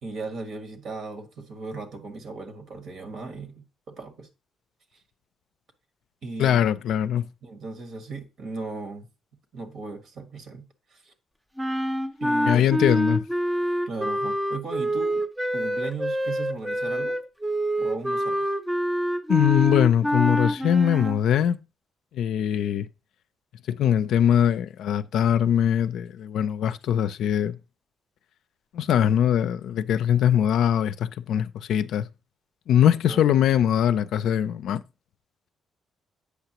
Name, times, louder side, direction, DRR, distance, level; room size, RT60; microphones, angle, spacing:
voice 1, 0.0-4.3 4.9-5.0 6.2-6.6 7.4-9.1 9.5-10.6 10.9-11.1 12.2-12.7 13.9-15.2 15.5-17.2 17.8-18.5 33.1-33.4, right 3 dB, 65° right, 1.5 m, -37 dB
voice 2, 6.4-7.3 12.5-13.3 19.3-21.6 22.1-22.9 23.7-27.6 28.7-32.1 32.7-34.8, left 10 dB, 75° left, 0.4 m, -22 dB
sound 1, 11.6-21.2, equal, 5° right, 0.4 m, -26 dB
8.2 x 5.7 x 2.9 m
cardioid pair, 90°, 0 cm